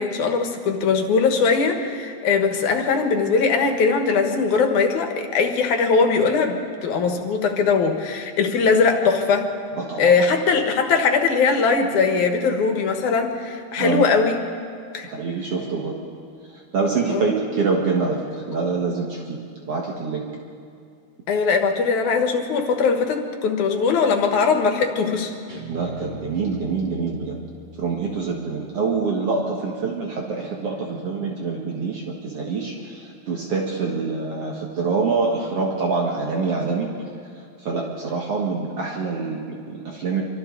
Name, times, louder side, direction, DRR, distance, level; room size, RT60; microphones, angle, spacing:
voice 1, 0.0-9.5 10.0-14.4 14.9-15.1 17.1-17.3 21.3-25.3, left 5 dB, 85° left, 4 dB, 3.0 m, -20 dB
voice 2, 9.8-10.1 13.8-14.0 15.0-15.9 16.7-19.4 19.7-20.2 25.7-27.3 27.8-37.0 37.6-40.2, right 4 dB, 55° right, -1 dB, 2.5 m, -25 dB
Guitar, 25.5-28.7, left 3 dB, 20° right, 1.6 m, -42 dB
27.0 x 25.0 x 4.0 m, 2.3 s
omnidirectional pair, 3.4 m